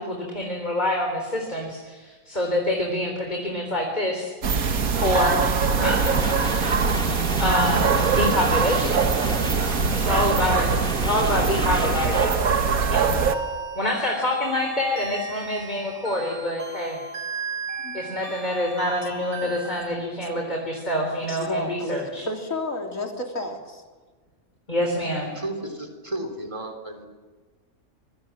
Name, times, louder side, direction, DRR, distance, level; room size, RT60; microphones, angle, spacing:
voice 1, 0.0-4.3 5.0-5.4 5.7-6.1 7.4-9.0 9.9-12.3 12.9-13.2 13.8-17.0 17.9-22.2 24.7-25.3, left 1 dB, 30° left, 1 dB, 4.1 m, -26 dB
sound 1, 4.4-13.3, right 5 dB, 85° right, 1.9 m, -22 dB
sound 2, 6.0-12.3, equal, 5° left, 1.7 m, -33 dB
sound 3, 11.1-19.9, right 4 dB, 50° right, 2.7 m, -37 dB
voice 2, 17.8-18.1 19.0-19.6 19.9-20.7 21.2-23.8, left 2 dB, 65° left, 2 dB, 3.8 m, -33 dB
voice 3, 25.3-27.1, right 1 dB, 20° right, 4 dB, 3.7 m, -33 dB
26.5 x 23.5 x 7.5 m, 1.4 s
omnidirectional pair, 1.5 m